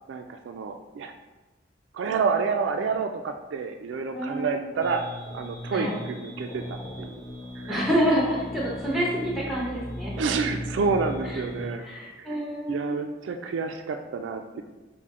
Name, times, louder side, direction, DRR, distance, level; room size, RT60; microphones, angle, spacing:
voice 1, 0.1-1.1 1.9-5.1 5.3-7.2 7.6-7.9 10.2-11.8 12.7-14.6, right 5 dB, 85° right, 5 dB, 0.3 m, -29 dB
voice 2, 4.1-4.6 5.7-6.0 7.7-10.1 11.3-11.4 11.8-13.1, equal, ahead, -4 dB, 0.8 m, -27 dB
sound 1, 4.8-11.7, left 1 dB, 20° left, 0.4 m, -37 dB
5.7 x 2.1 x 3.6 m, 1.2 s
head